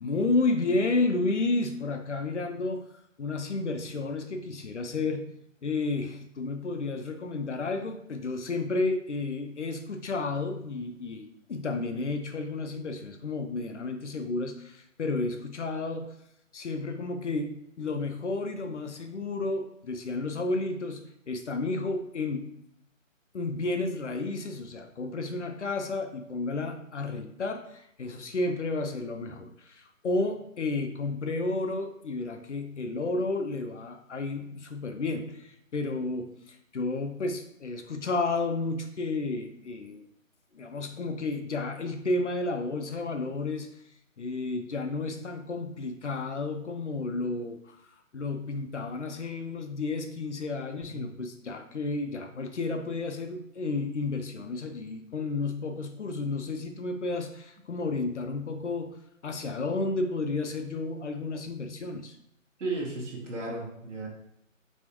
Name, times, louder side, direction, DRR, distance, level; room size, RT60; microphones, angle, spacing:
voice 1, 0.0-2.8 3.2-5.3 5.6-16.1 16.5-22.5 23.3-40.0 40.5-43.7 44.2-47.8 48.1-62.2, left 3 dB, 60° left, 6 dB, 0.6 m, -32 dB
voice 2, 62.6-64.1, right 2 dB, 65° right, -2 dB, 1.7 m, -34 dB
4.2 x 3.4 x 3.0 m, 0.78 s
hypercardioid pair, 170°, 40 cm